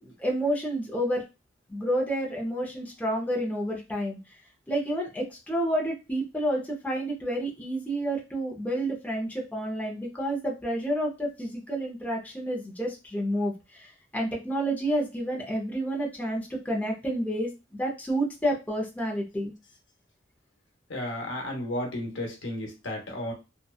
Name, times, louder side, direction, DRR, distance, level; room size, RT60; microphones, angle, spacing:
voice 1, 0.0-1.2 1.7-4.2 4.7-19.5, right 1 dB, 10° left, -2 dB, 0.6 m, -30 dB
voice 2, 20.9-23.3, left 1 dB, 75° left, 1 dB, 0.8 m, -33 dB
2.7 x 2.2 x 2.3 m, 0.27 s
head